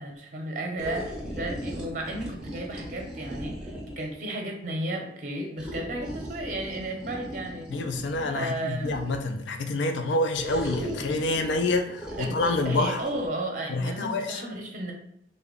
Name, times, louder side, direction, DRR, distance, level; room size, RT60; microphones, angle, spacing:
voice 1, 0.0-7.7 8.3-9.0 12.2-12.4 12.6-14.9, right 1 dB, 45° right, 1 dB, 0.6 m, -34 dB
sound 1, 0.8-4.1 5.6-9.4 10.3-13.3, equal, 5° right, 0.6 m, -38 dB
voice 2, 7.7-13.0 13.7-14.4, left 2 dB, 85° left, 6 dB, 0.4 m, -27 dB
3.4 x 2.2 x 3.7 m, 0.74 s
head